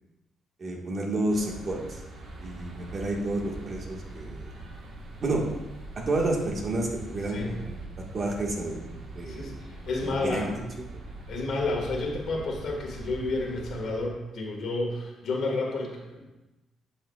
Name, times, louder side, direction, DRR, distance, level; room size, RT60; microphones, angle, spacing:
voice 1, 0.6-1.8 2.4-4.5 5.2-5.4 6.1-8.8 9.1-9.5 10.0-10.5, right 2 dB, 45° right, 0 dB, 1.5 m, -30 dB
sound 1, 1.3-14.0, right 2 dB, 60° right, 1.3 m, -42 dB
voice 2, 9.3-10.5 11.3-16.2, left 2 dB, 65° left, 0 dB, 1.7 m, -31 dB
10.5 x 5.6 x 2.3 m, 1.1 s
cardioid pair, 90°, 0 cm